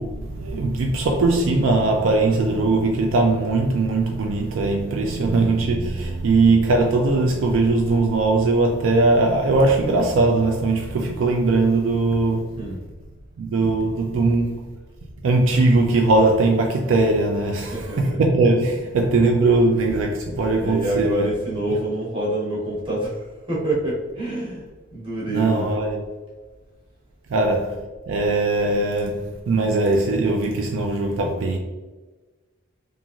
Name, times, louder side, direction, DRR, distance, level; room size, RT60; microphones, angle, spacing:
voice 1, 0.0-12.6 13.4-14.7 15.2-21.3 25.3-26.0 27.3-31.6, right 2 dB, 70° right, 0.3 m, -20 dB
voice 2, 17.7-18.2 20.6-25.7, right 1 dB, 25° right, 0.9 m, -26 dB
2.9 x 2.5 x 2.4 m
head